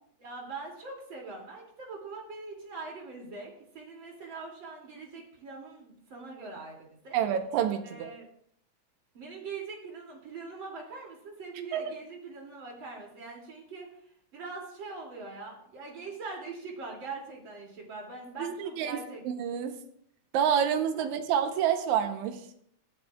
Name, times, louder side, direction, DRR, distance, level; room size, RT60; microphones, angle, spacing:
voice 1, 0.2-7.2 7.8-8.3 9.1-13.9 14.3-19.2, right 4 dB, 40° right, -1 dB, 3.2 m, -42 dB
voice 2, 7.1-8.1 11.7-11.8 18.4-19.0 19.2-19.8 20.3-22.5, right 9 dB, 80° right, 6 dB, 2.2 m, -28 dB
23.0 x 7.8 x 2.4 m, 0.68 s
omnidirectional pair, 3.4 m